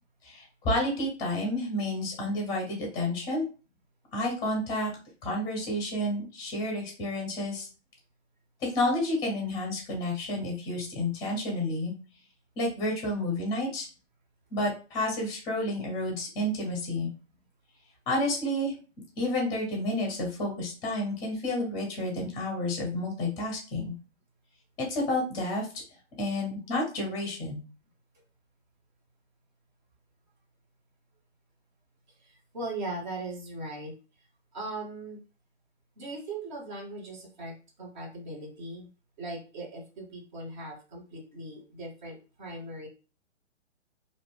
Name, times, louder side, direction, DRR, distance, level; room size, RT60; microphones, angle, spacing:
voice 1, 0.2-3.5 4.1-4.9 5.2-7.7 8.6-11.9 12.6-13.9 14.5-17.1 18.1-18.7 19.2-23.9 24.8-25.7 26.2-27.6, left 1 dB, 10° left, 0 dB, 0.6 m, -30 dB
voice 2, 32.2-33.9 34.5-35.2 36.0-38.9 39.2-42.9, right 2 dB, 40° right, 1 dB, 0.8 m, -39 dB
2.6 x 2.1 x 3.5 m, 0.35 s
figure-of-eight pair, 130°, 37 cm